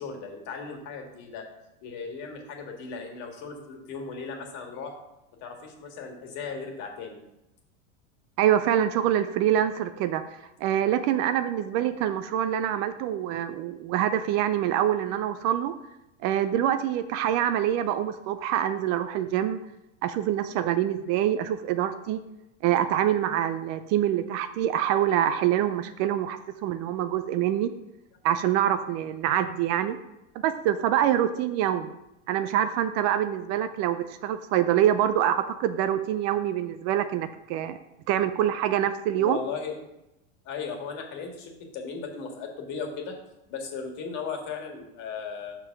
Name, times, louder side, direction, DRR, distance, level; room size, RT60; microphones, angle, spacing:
voice 1, 0.0-1.4 1.8-4.9 5.4-7.2 39.2-39.8 40.5-43.2 43.5-45.6, left 5 dB, 50° left, 3 dB, 1.9 m, -36 dB
voice 2, 8.4-10.2 10.6-15.7 16.2-19.6 20.0-22.2 22.6-27.7 28.2-30.0 30.4-32.0 32.3-37.8 38.1-39.4, right 11 dB, 45° right, 11 dB, 0.5 m, -25 dB
5.6 x 4.9 x 5.9 m, 0.92 s
hypercardioid pair, 110°, 38 cm